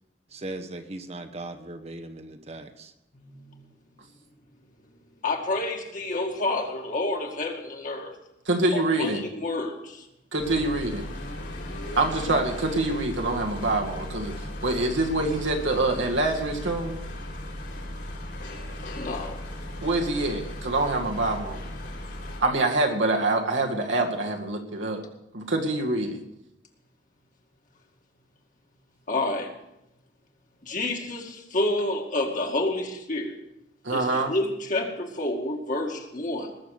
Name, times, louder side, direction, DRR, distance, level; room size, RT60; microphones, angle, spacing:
voice 1, 0.3-2.9, right 2 dB, 35° right, 7 dB, 1.0 m, -38 dB
voice 2, 3.1-3.6 5.2-8.1 8.7-10.1 19.0-19.4 29.1-29.5 30.6-33.4 33.9-36.5, left 2 dB, 45° left, 1 dB, 2.1 m, -29 dB
voice 3, 8.5-9.3 10.3-11.0 12.0-17.0 19.8-21.7 22.4-25.0 25.3-26.2 33.8-34.3, right 2 dB, 85° right, 1 dB, 2.1 m, -25 dB
sound 1, 10.4-22.4, left 1 dB, 65° left, 4.4 m, -36 dB
20.5 x 6.9 x 6.6 m, 0.86 s
head